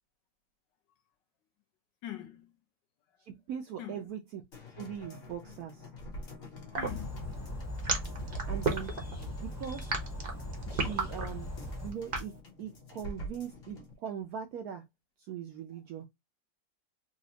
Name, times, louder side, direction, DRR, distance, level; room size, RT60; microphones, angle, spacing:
voice 1, 2.0-2.5 3.8-4.1 6.8-7.3 10.7-10.8, left 12 dB, 70° left, 1.4 m, -43 dB
voice 2, 3.2-4.4 4.7-5.9 8.2-8.9 9.4-9.9 10.7-11.5 11.8-14.8 15.2-16.1, right 8 dB, 75° right, 0.8 m, -41 dB
Drumloop with gong (in pain), 4.5-13.9 14.3-14.4, equal, 40° left, 1.0 m, -46 dB
Gurgling (non human), 6.7-12.3, right 4 dB, 45° right, 0.7 m, -32 dB
sound 1, 6.8-11.9, left 1 dB, 10° left, 0.8 m, -40 dB
4.0 x 2.3 x 2.8 m
omnidirectional pair, 2.0 m